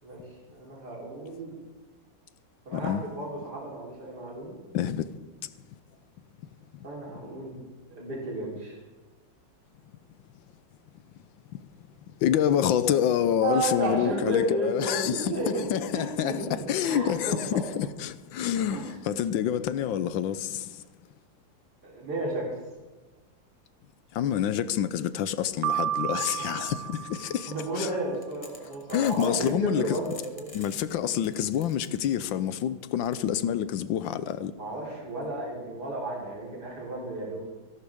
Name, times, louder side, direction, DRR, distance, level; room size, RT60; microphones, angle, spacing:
voice 1, 0.5-1.6 2.7-4.6 6.8-7.5 7.9-8.8 13.4-15.7 15.9-16.4 16.8-17.6 18.7-19.0 21.8-22.6 26.6-26.7 27.5-30.5 34.6-37.4, right 1 dB, 50° right, 4.3 m, -32 dB
voice 2, 2.7-3.0 4.7-5.2 5.4-5.5 6.7-6.9 12.2-20.8 24.1-27.9 28.9-30.0 30.5-34.5, left 10 dB, 75° left, 1.3 m, -27 dB
Piano, 25.6-27.8, right 11 dB, 75° right, 1.4 m, -32 dB
sound 1, 28.2-29.6 29.9-32.5 33.0-33.1, left 2 dB, 20° left, 1.1 m, -48 dB
26.5 x 11.5 x 3.6 m
omnidirectional pair, 2.3 m